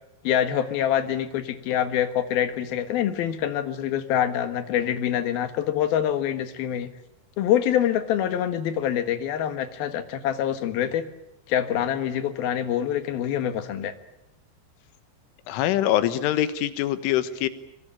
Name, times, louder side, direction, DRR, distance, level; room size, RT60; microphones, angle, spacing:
voice 1, 0.2-6.9 7.4-11.0 11.5-13.9, left 10 dB, 60° left, 10 dB, 3.0 m, -25 dB
voice 2, 15.5-17.5, left 12 dB, 85° left, 13 dB, 3.7 m, -24 dB
25.5 x 23.0 x 8.8 m, 0.79 s
omnidirectional pair, 5.5 m